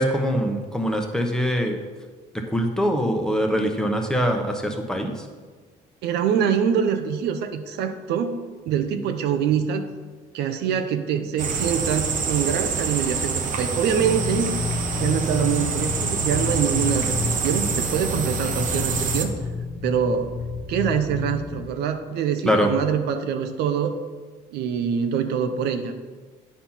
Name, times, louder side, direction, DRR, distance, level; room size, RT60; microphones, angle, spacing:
voice 1, 0.0-1.8 2.5-5.1 22.4-22.7, equal, 5° left, 3 dB, 1.0 m, -23 dB
voice 2, 6.0-9.9 10.3-14.5 15.0-19.3 19.8-20.3 20.7-24.0 24.5-25.9, right 7 dB, 80° right, 8 dB, 0.7 m, -24 dB
sound 1, 11.4-19.2, right 5 dB, 50° right, 1.0 m, -26 dB
sound 2, 14.0-21.7, left 4 dB, 55° left, 0.7 m, -30 dB
9.1 x 4.4 x 5.7 m, 1.4 s
cardioid pair, 110°, 17 cm